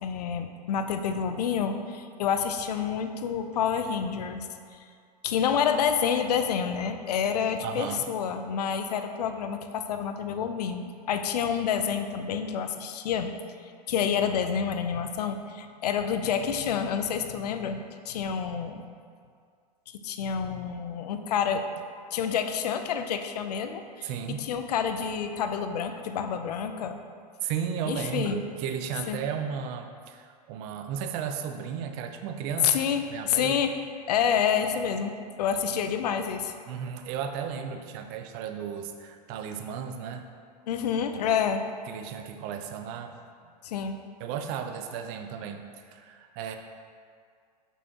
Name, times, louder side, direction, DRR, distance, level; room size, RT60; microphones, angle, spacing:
voice 1, 0.0-4.8 5.2-13.3 13.9-17.8 18.1-18.8 20.0-21.8 22.1-24.1 24.4-27.0 27.9-28.4 29.1-29.2 32.6-33.0 33.3-33.7 34.1-36.5 40.7-41.6 43.6-44.0, left 7 dB, 70° left, 7 dB, 0.5 m, -28 dB
voice 2, 7.6-8.1 24.0-24.5 27.4-32.8 33.1-33.5 36.7-40.2 41.9-43.1 44.2-46.6, right 7 dB, 45° right, 6 dB, 0.6 m, -34 dB
6.1 x 5.4 x 2.9 m, 2.1 s
hypercardioid pair, 95°, 21 cm